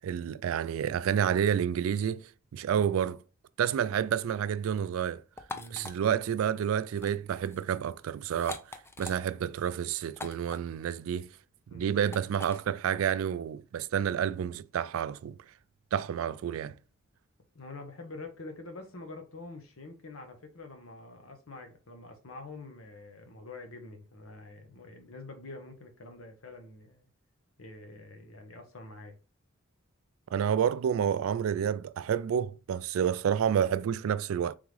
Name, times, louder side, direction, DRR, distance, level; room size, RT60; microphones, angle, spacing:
voice 1, 0.0-3.2 3.6-5.2 5.7-8.6 9.0-11.3 11.7-15.3 15.9-16.8 30.3-34.5, right 8 dB, 85° right, 0.3 m, -29 dB
sound 1, 5.4-5.9 6.9-7.1 7.4-7.6 8.3-9.2 10.1-10.6 12.1-12.6, left 3 dB, 10° left, 0.4 m, -42 dB
voice 2, 5.5-5.9 11.7-11.9 17.5-27.1 27.6-29.2, left 2 dB, 80° left, 1.0 m, -46 dB
3.6 x 3.6 x 3.2 m
head